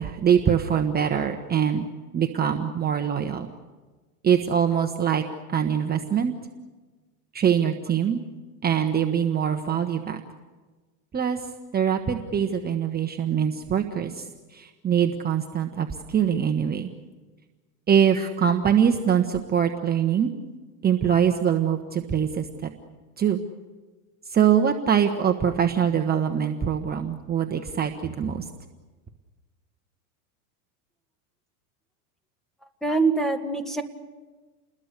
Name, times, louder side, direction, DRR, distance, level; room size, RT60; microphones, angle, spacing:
voice 1, 0.0-1.9 2.1-3.5 4.2-5.2 5.5-6.3 7.3-8.2 8.6-10.2 11.1-16.9 17.9-20.3 20.8-22.7 23.2-23.4 24.3-28.5, right 8 dB, 20° right, 4 dB, 1.2 m, -23 dB
voice 2, 32.8-33.8, right 3 dB, ahead, 6 dB, 1.9 m, -24 dB
29.5 x 21.0 x 6.8 m, 1.3 s
supercardioid pair, 125°, 44 cm